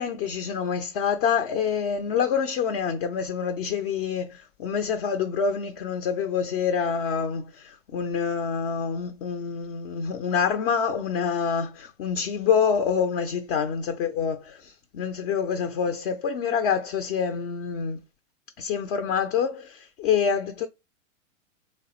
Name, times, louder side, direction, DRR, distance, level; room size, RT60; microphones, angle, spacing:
voice 1, 0.0-18.0 18.6-20.7, left 6 dB, 40° left, 0.5 m, -26 dB
3.4 x 2.0 x 4.2 m
hypercardioid pair, 115°, 40 cm